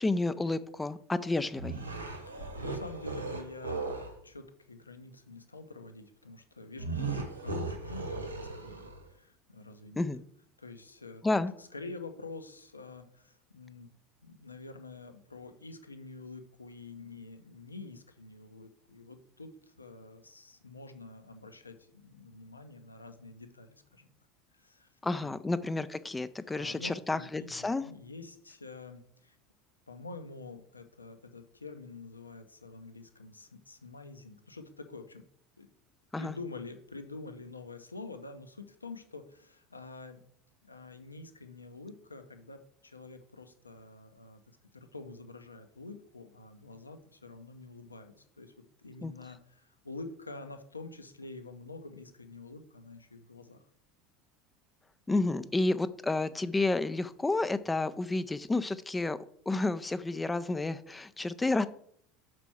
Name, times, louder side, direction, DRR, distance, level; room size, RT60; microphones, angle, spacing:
voice 1, 0.0-1.8 10.0-10.2 11.2-11.5 25.0-27.8 36.1-36.3 49.0-49.1 55.1-59.2 59.5-61.7, left 2 dB, 10° left, 12 dB, 0.4 m, -30 dB
sound 1, 1.5-4.2 6.8-9.1, right 3 dB, 85° right, 1.0 m, -37 dB
voice 2, 2.3-10.1 10.6-11.2 11.6-13.9 14.2-24.1 24.5-24.9 25.2-25.4 26.5-29.4 29.9-35.2 35.6-35.7 36.2-40.2 40.6-44.4 44.7-48.5 48.8-53.6, left 3 dB, 85° left, 7 dB, 0.6 m, -47 dB
5.9 x 4.5 x 5.9 m, 0.64 s
figure-of-eight pair, 75°, 0 cm